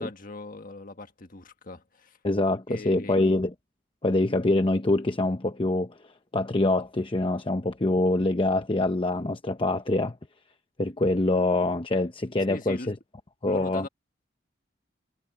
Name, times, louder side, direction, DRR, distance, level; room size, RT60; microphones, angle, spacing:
voice 1, 0.0-2.2 2.7-3.2 12.5-13.0 13.5-13.9, left 2 dB, 50° left, 1.6 m, -40 dB
voice 2, 2.2-3.5 4.0-6.0 6.3-10.2 10.8-12.9 13.4-13.9, left 2 dB, 30° left, 0.9 m, -25 dB
head